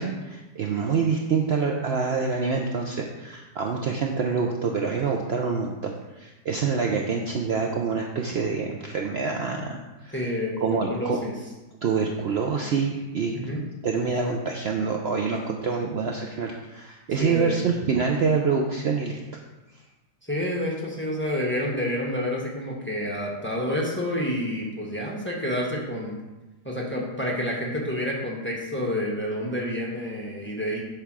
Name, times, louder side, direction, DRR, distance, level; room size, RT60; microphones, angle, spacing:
voice 1, 0.0-10.1 10.6-11.2 11.8-13.3 13.8-19.2, right 5 dB, 80° right, 1 dB, 0.5 m, -26 dB
voice 2, 10.1-11.3 13.3-13.6 17.2-17.8 20.3-26.2 26.6-30.8, left 1 dB, 10° left, -3 dB, 0.9 m, -29 dB
8.3 x 3.4 x 6.0 m, 1.1 s
omnidirectional pair, 1.9 m